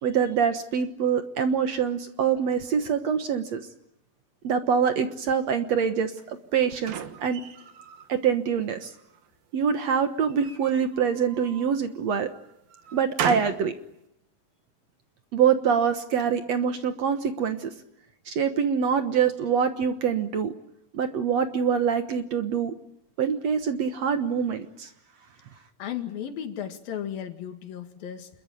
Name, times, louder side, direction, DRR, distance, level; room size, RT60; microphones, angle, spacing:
voice 1, 0.0-3.6 4.4-7.0 7.2-7.4 8.1-8.9 9.5-12.3 12.9-13.7 15.3-17.7 18.3-20.5 20.9-22.7 23.2-24.9, right 7 dB, 60° right, 8 dB, 2.1 m, -25 dB
sound 1, 6.2-8.1 8.6-9.3 10.3-11.8 12.3-13.7, right 9 dB, 80° right, 3.4 m, -36 dB
voice 2, 25.8-28.3, left 9 dB, 80° left, 6 dB, 3.8 m, -35 dB
28.0 x 22.0 x 9.2 m, 0.81 s
omnidirectional pair, 4.1 m